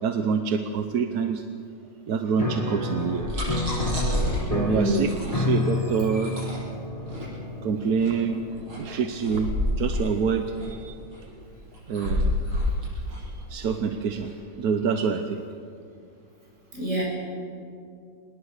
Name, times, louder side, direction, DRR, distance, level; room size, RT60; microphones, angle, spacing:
voice 1, 0.0-1.4 2.1-3.3 4.5-6.3 7.6-8.4 8.8-11.3 11.9-12.4 13.2-14.3 14.6-15.4, right 6 dB, 55° right, 7 dB, 1.2 m, -26 dB
Piano, 2.4-10.8, left 2 dB, 20° left, 1.9 m, -31 dB
sound 1, 3.0-14.3, left 1 dB, 80° right, 8.3 m, -30 dB
voice 2, 4.7-5.0 16.7-17.0, equal, 35° right, -3 dB, 7.7 m, -26 dB
25.5 x 20.5 x 6.6 m, 2.4 s
omnidirectional pair, 2.2 m